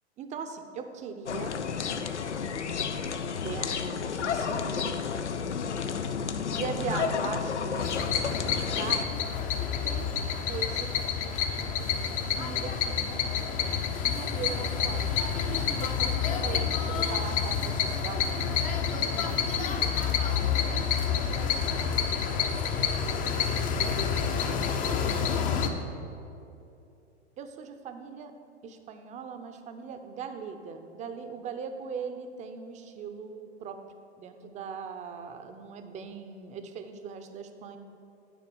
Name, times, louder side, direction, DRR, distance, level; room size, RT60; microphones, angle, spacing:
voice 1, 0.2-1.5 3.4-5.1 6.5-7.9 8.4-9.1 9.8-11.0 12.3-13.1 14.0-18.5 19.1-20.0 20.7-22.0 24.8-25.4 27.4-28.3 28.6-33.8 34.2-37.8, right 6 dB, 20° right, 7 dB, 0.6 m, -40 dB
sound 1, 1.3-9.0, left 6 dB, 90° left, 0.6 m, -31 dB
sound 2, 7.8-25.7, left 7 dB, 25° left, 0.6 m, -28 dB
9.3 x 4.3 x 6.8 m, 2.7 s
hypercardioid pair, 105°, 34 cm